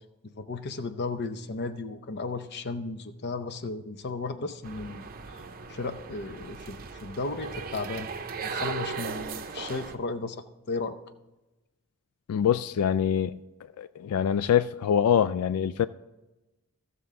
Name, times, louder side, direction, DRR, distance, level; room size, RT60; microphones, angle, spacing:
voice 1, 0.3-5.0 5.7-8.1 8.4-11.0, left 3 dB, 50° left, 11 dB, 0.7 m, -34 dB
sound 1, 4.6-10.0, right 5 dB, 45° right, 0.7 m, -37 dB
voice 2, 12.3-13.4 13.8-15.9, left 8 dB, 90° left, 14 dB, 0.3 m, -24 dB
15.0 x 6.8 x 3.6 m, 1.0 s
head